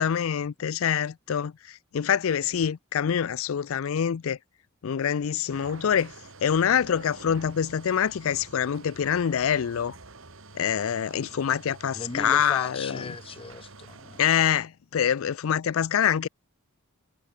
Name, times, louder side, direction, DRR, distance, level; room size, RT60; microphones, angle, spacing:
voice 1, 0.0-4.4 4.8-6.1 6.4-10.0 10.5-13.0 14.2-16.3, left 8 dB, 70° left, 0.4 m, -25 dB
sound 1, 5.5-14.6, right 3 dB, 65° right, 2.4 m, -47 dB
voice 2, 11.9-14.2, left 4 dB, 25° left, 0.7 m, -37 dB
head